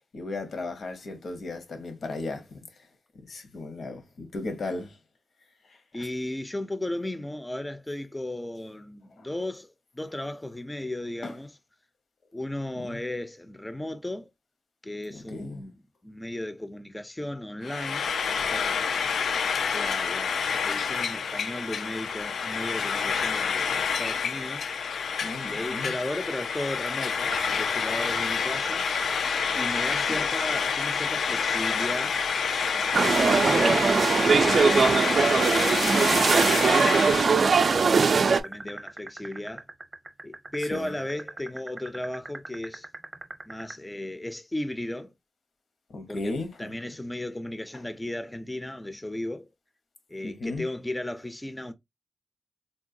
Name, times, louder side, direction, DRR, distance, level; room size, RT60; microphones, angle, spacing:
voice 1, 0.1-2.6 3.3-5.0 6.0-6.1 9.2-9.3 11.2-11.3 12.8-13.0 15.1-15.6 19.5-19.7 25.2-25.9 30.1-30.2 33.2-33.6 40.7-41.0 45.9-46.7 50.2-50.6, left 2 dB, 70° left, 0.8 m, -36 dB
voice 2, 5.9-11.5 12.3-14.3 14.8-15.7 16.0-18.9 19.7-24.9 25.4-28.9 29.5-32.2 32.7-35.1 35.7-39.6 40.2-42.9 43.5-45.1 46.1-49.5 50.1-51.7, left 1 dB, 15° left, 0.4 m, -35 dB
Frying (food), 17.6-37.4, left 6 dB, 85° left, 0.3 m, -28 dB
sound 1, 27.2-34.0 35.5-43.7, right 2 dB, 30° right, 0.7 m, -39 dB
sound 2, 32.9-38.4, right 5 dB, 60° right, 0.3 m, -21 dB
3.7 x 2.2 x 2.5 m
cardioid pair, 85°, 0 cm